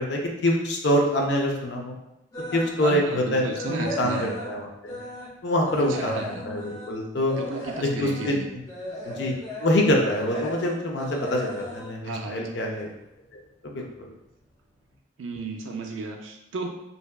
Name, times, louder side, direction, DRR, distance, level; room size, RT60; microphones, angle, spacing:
voice 1, 0.0-2.0 2.5-5.0 5.4-6.2 6.4-7.3 7.8-8.4 9.0-9.3 9.6-12.9 13.6-14.1, left 1 dB, 55° left, 0 dB, 0.4 m, -25 dB
sound 1, 2.3-2.8 3.2-5.4 5.6-12.9 13.2-13.5 14.0-14.1 14.4-14.5, equal, 15° left, 0.6 m, -36 dB
voice 2, 2.8-4.3 5.8-6.5 7.4-8.5 12.0-12.5 15.2-16.7, right 3 dB, 70° right, 3 dB, 0.4 m, -33 dB
2.6 x 2.2 x 2.2 m, 0.87 s
head